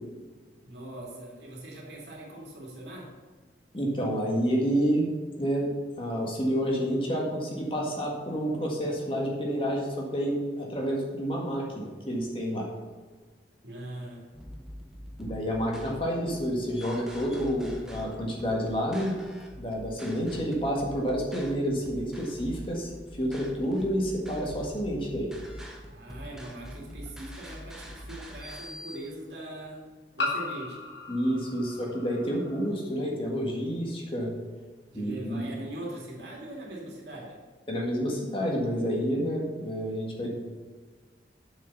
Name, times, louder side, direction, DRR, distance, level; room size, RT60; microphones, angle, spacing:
voice 1, 0.6-3.1 13.6-14.2 25.8-29.8 30.1-30.8 34.9-37.4, right 1 dB, 70° right, -3 dB, 2.7 m, -41 dB
voice 2, 3.7-5.1 5.4-5.7 6.0-12.7 15.2-19.2 19.5-22.9 23.2-25.3 31.1-34.3 34.9-35.4 37.7-40.4, equal, 30° left, -1 dB, 1.7 m, -29 dB
sound 1, 14.3-29.0, equal, 5° right, 1.2 m, -44 dB
sound 2, 26.2-26.3 28.0-28.1 30.2-32.7, left 3 dB, 70° left, 2.2 m, -36 dB
7.3 x 6.8 x 7.0 m, 1.4 s
head